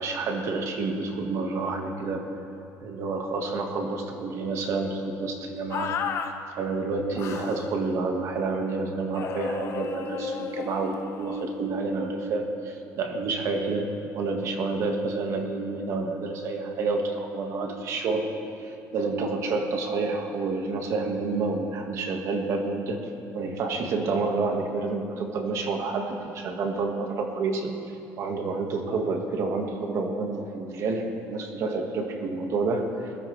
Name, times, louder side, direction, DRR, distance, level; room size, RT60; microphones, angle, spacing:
voice 1, 0.0-2.2 2.8-5.9 6.5-18.3 18.6-23.0 23.3-33.1, right 3 dB, 50° right, 3 dB, 1.7 m, -29 dB
sound 1, 5.7-6.3 7.2-7.7 9.1-11.5, left 7 dB, 45° left, 0.9 m, -34 dB
21.5 x 13.0 x 3.3 m, 2.8 s
cardioid pair, 155°, 7 cm